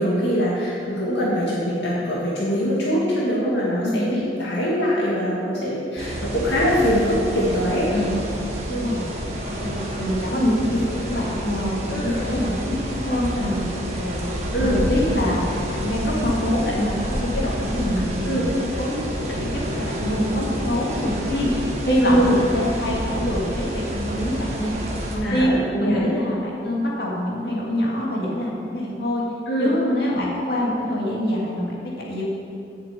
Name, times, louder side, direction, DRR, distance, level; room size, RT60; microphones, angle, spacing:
voice 1, 0.0-7.9 8.7-8.8 11.9-12.1 14.5-14.8 18.2-18.4 22.0-22.4 25.2-26.0 29.5-29.7, equal, 75° left, -6 dB, 2.0 m, -23 dB
voice 2, 3.8-4.1 7.9-8.1 8.7-9.0 9.4-14.2 14.6-15.4 15.7-19.0 19.4-21.5 21.9-24.7 25.1-25.5 25.8-29.2 29.6-32.2, equal, 60° left, -4 dB, 2.4 m, -25 dB
sound 1, 6.0-25.2, equal, 35° right, 1.6 m, -29 dB
7.9 x 7.0 x 8.4 m, 2.5 s
head